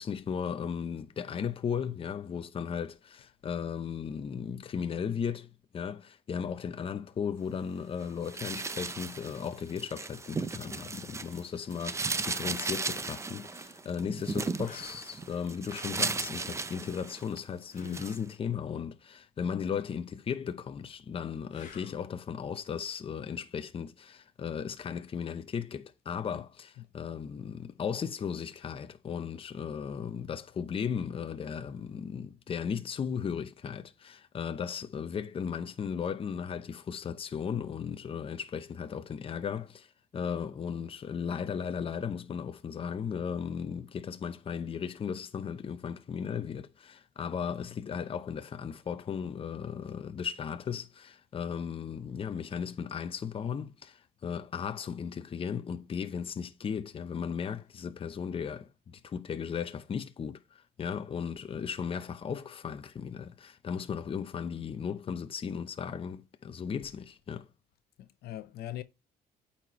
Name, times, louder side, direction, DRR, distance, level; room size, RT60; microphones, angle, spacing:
voice 1, 0.0-5.5 5.7-67.5, left 7 dB, 35° left, 0.7 m, -36 dB
sound 1, 8.2-11.4 11.7-17.4 17.8-18.2, right 3 dB, 15° right, 0.6 m, -35 dB
sound 2, 14.6-15.1 17.7-18.2 21.5-22.1 25.1-25.3, left 7 dB, 50° left, 1.6 m, -47 dB
voice 2, 68.0-68.8, left 12 dB, 70° left, 0.7 m, -41 dB
8.7 x 4.3 x 3.0 m
cardioid pair, 110°, 17 cm